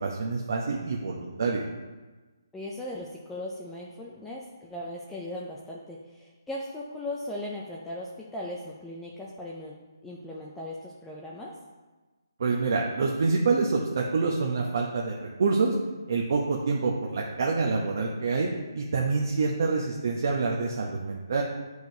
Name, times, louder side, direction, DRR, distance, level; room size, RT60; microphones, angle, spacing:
voice 1, 0.0-1.6 12.4-15.7 16.1-21.4, right 4 dB, 50° right, -2 dB, 0.7 m, -27 dB
voice 2, 2.5-9.8 10.0-11.5, left 1 dB, 5° left, -4 dB, 0.4 m, -38 dB
8.8 x 4.7 x 2.7 m, 1.3 s
hypercardioid pair, 165°, 2 cm